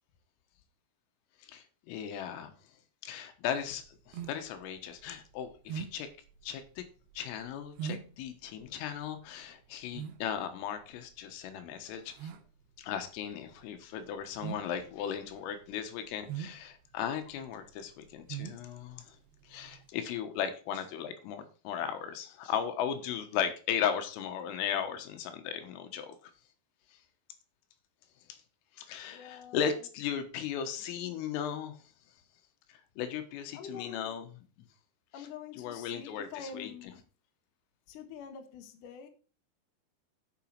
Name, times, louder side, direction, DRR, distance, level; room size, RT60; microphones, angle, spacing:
voice 1, 1.5-2.5 3.0-6.1 6.4-6.8 7.2-12.3 12.8-19.0 19.5-26.2 28.8-31.8 33.0-34.3 35.2-35.3 35.6-36.7, left 8 dB, 85° left, 8 dB, 3.9 m, -36 dB
sound 1, 3.5-19.9, right 8 dB, 75° right, 2.6 m, -44 dB
voice 2, 29.0-29.9 33.5-34.2 35.1-37.0 37.9-39.1, left 6 dB, 65° left, 5 dB, 2.2 m, -46 dB
11.5 x 6.1 x 4.6 m, 0.37 s
omnidirectional pair, 5.8 m